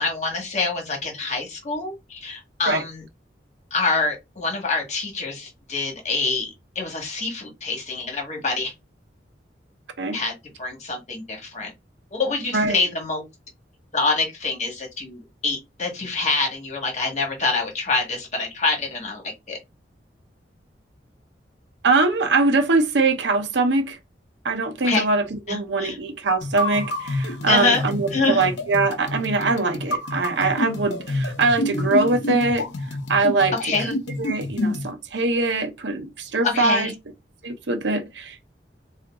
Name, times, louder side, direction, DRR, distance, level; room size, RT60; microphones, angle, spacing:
voice 1, 0.0-3.0 3.7-8.7 10.1-11.7 12.1-13.2 13.9-19.6 24.8-25.1 25.5-26.0 27.5-27.8 28.1-28.5 33.6-33.9 36.4-36.9, left 3 dB, 40° left, 1.5 m, -26 dB
voice 2, 12.5-12.8 21.8-24.0 24.4-32.7 33.1-33.5 33.9-36.9 37.4-38.5, right 3 dB, 80° right, 0.7 m, -22 dB
sound 1, 26.4-34.9, left 1 dB, 85° left, 0.7 m, -28 dB
3.7 x 2.5 x 3.5 m
head